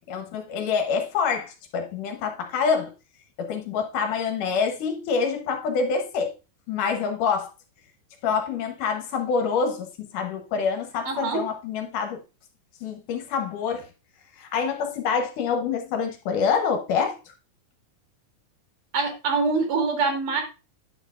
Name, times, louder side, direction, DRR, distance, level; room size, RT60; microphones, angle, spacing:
voice 1, 0.1-2.9 3.4-6.3 6.7-7.5 8.2-12.2 12.8-13.9 14.4-17.2, left 6 dB, 70° left, 2.4 m, -26 dB
voice 2, 11.1-11.4 18.9-20.4, right 4 dB, 65° right, 3.2 m, -24 dB
9.8 x 6.5 x 2.4 m
omnidirectional pair, 4.1 m